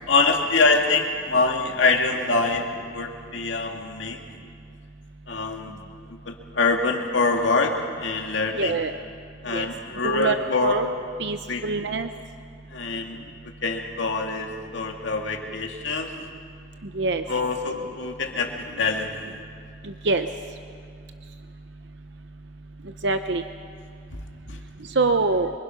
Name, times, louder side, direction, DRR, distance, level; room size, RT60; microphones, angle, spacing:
voice 1, 0.1-2.7 2.9-4.2 5.3-5.8 6.0-7.7 8.0-8.8 9.4-11.0 11.5-11.7 12.7-13.2 13.6-16.1 17.3-19.1 24.5-24.6, left 3 dB, 75° left, 2 dB, 2.1 m, -24 dB
voice 2, 8.6-8.9 9.5-9.7 10.0-10.9 11.2-11.4 11.6-12.1 17.0-17.2 20.0-20.3 23.0-23.4 25.0-25.5, right 3 dB, 65° right, 8 dB, 0.8 m, -23 dB
26.0 x 24.0 x 5.7 m, 2.2 s
head